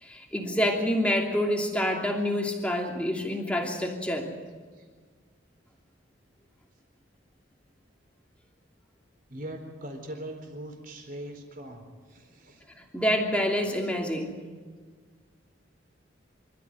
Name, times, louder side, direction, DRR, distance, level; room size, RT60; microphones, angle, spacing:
voice 1, 0.0-4.3 12.9-14.4, equal, 5° left, 1 dB, 2.9 m, -27 dB
voice 2, 9.3-12.6, right 1 dB, 45° right, 3 dB, 4.2 m, -41 dB
26.0 x 14.0 x 9.2 m, 1.6 s
head